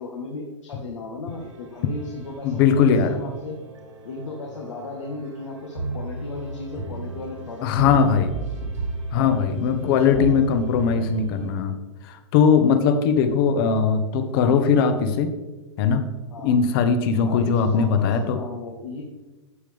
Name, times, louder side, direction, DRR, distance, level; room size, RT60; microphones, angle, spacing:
voice 1, 0.0-3.6 4.0-8.2 9.1-10.4 12.6-12.8 16.3-16.6 17.2-19.0, left 3 dB, 80° left, 0 dB, 1.6 m, -36 dB
sound 1, 1.3-11.5, right 2 dB, 80° right, 2.7 m, -35 dB
voice 2, 2.4-3.2 7.6-8.3 9.1-11.7 12.0-15.3 15.8-16.1 16.4-18.4, left 6 dB, 50° left, 9 dB, 1.3 m, -20 dB
13.0 x 7.7 x 3.5 m, 1.2 s
hypercardioid pair, 115°, 16 cm